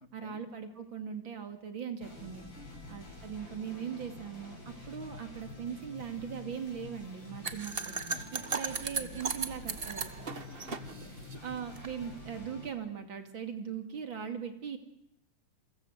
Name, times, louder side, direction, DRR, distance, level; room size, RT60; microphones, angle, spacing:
voice 1, 0.1-2.5 2.9-7.9 8.3-10.1 11.4-14.8, right 7 dB, 65° right, 7 dB, 3.2 m, -40 dB
sound 1, 2.0-12.7, left 2 dB, 60° left, 8.9 m, -48 dB
voice 2, 2.6-3.2 8.1-8.5 10.3-11.2, left 1 dB, 30° left, 7 dB, 2.3 m, -54 dB
sound 2, 7.4-11.9, right 4 dB, 30° right, 1.3 m, -36 dB
28.0 x 23.5 x 8.0 m, 0.78 s
omnidirectional pair, 2.4 m